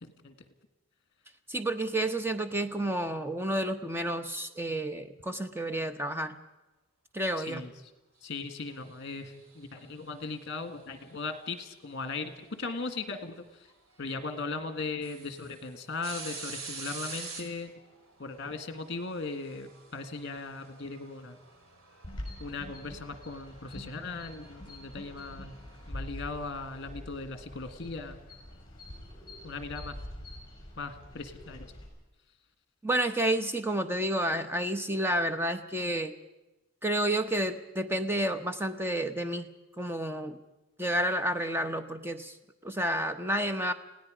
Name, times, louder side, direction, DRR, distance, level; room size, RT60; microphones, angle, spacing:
voice 1, 0.0-0.3 7.4-7.7 8.2-13.7 14.0-17.7 18.2-21.4 22.4-25.6 25.9-28.2 29.4-30.0 30.8-31.7, left 3 dB, 50° left, 8 dB, 1.7 m, -38 dB
voice 2, 1.5-6.4 7.1-7.6 32.8-36.1 36.8-39.5 39.8-40.4 40.8-42.4 42.6-43.7, right 1 dB, 10° right, 8 dB, 0.8 m, -30 dB
sound 1, 8.7-10.1 12.0-12.1 13.7-13.8 14.2-14.3 14.8-25.9, right 4 dB, 75° right, 2.5 m, -47 dB
sound 2, 22.0-31.9, left 1 dB, 25° left, 5.8 m, -45 dB
30.0 x 17.5 x 5.1 m, 1.0 s
head